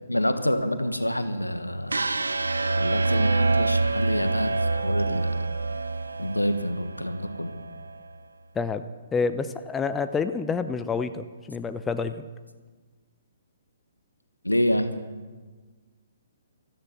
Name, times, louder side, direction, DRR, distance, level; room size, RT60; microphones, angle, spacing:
voice 1, 0.1-2.0 2.8-5.5 6.2-7.5 14.4-14.9, equal, 90° left, 9 dB, 1.3 m, -27 dB
sound 1, 1.9-8.0, right 3 dB, 75° right, 0.8 m, -26 dB
voice 2, 9.1-12.3, left 5 dB, 10° left, 10 dB, 0.6 m, -28 dB
14.5 x 13.5 x 7.3 m, 1.4 s
figure-of-eight pair, 125°, 0 cm